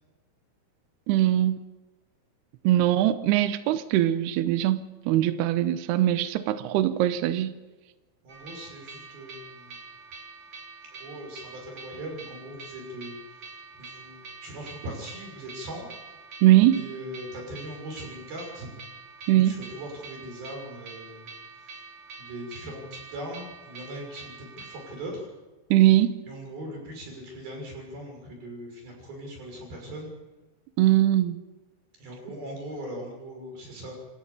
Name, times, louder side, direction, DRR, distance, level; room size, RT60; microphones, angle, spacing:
voice 1, 1.1-1.6 2.6-7.5 16.4-16.8 19.3-19.6 25.7-26.1 30.8-31.4, right 13 dB, 85° right, 11 dB, 2.4 m, -21 dB
voice 2, 8.2-9.8 10.8-15.9 16.2-16.3 16.7-18.7 19.3-21.9 22.2-25.3 26.3-30.1 32.0-33.9, right 1 dB, 50° right, 1 dB, 7.8 m, -40 dB
sound 1, 8.3-25.0, right 4 dB, 30° right, 4.1 m, -46 dB
28.0 x 14.0 x 7.1 m, 1.2 s
omnidirectional pair, 5.7 m